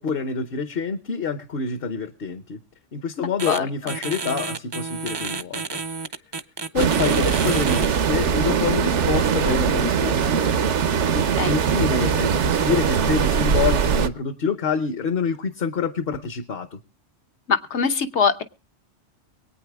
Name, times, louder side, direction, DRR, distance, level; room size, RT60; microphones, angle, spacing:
voice 1, 0.0-2.6 2.9-5.8 6.7-10.6 11.5-16.8, left 5 dB, 55° left, 11 dB, 1.0 m, -27 dB
sound 1, 3.4-3.6 3.9-7.9, right 4 dB, 35° right, 0.4 m, -30 dB
sound 2, 6.8-14.1, right 7 dB, 75° right, 1.1 m, -21 dB
voice 2, 17.5-18.4, left 6 dB, 70° left, 9 dB, 1.3 m, -22 dB
23.5 x 9.0 x 3.5 m, 0.35 s
omnidirectional pair, 1.2 m